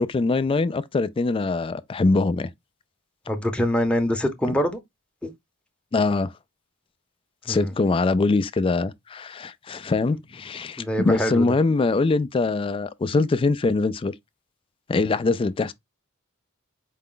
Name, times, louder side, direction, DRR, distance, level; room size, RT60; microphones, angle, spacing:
voice 1, 0.0-2.5 5.9-6.3 7.5-14.1 14.9-15.7, left 3 dB, 25° left, 0.3 m, -23 dB
voice 2, 3.3-4.8 5.2-5.3 7.5-7.7 10.8-11.4, equal, 5° left, 0.7 m, -24 dB
4.9 x 2.2 x 3.6 m
head